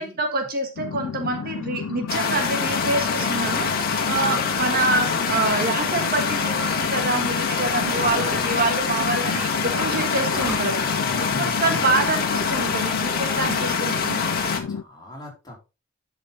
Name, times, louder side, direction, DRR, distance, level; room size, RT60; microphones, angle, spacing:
voice 1, 0.0-11.1 11.4-14.3, right 3 dB, 45° right, 5 dB, 1.6 m, -26 dB
sound 1, 0.8-14.8, left 6 dB, 90° left, 0.4 m, -32 dB
sound 2, 2.1-14.6, left 5 dB, 45° left, 1.8 m, -25 dB
sound 3, 3.1-5.9 6.9-7.1 7.6-8.6 9.6-10.7 11.1-11.3 11.6-13.8, equal, 5° right, 4.9 m, -36 dB
voice 2, 4.2-4.5 10.9-11.9 14.4-15.6, left 1 dB, 20° left, -2 dB, 3.9 m, -39 dB
11.5 x 5.6 x 3.7 m, 0.28 s
head